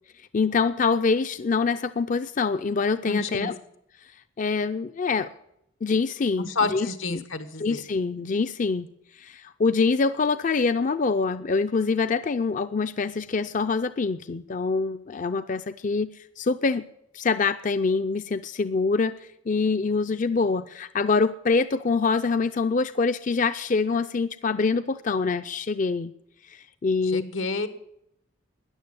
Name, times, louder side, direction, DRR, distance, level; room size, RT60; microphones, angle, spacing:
voice 1, 0.3-3.5 4.4-5.3 5.8-7.2 7.6-8.9 9.2-16.8 17.1-19.2 19.5-26.1 26.5-27.2, left 4 dB, 40° left, 11 dB, 0.4 m, -25 dB
voice 2, 3.0-3.5 6.4-7.8 27.0-27.7, left 3 dB, 90° left, 11 dB, 1.5 m, -29 dB
13.5 x 10.0 x 8.1 m, 0.76 s
head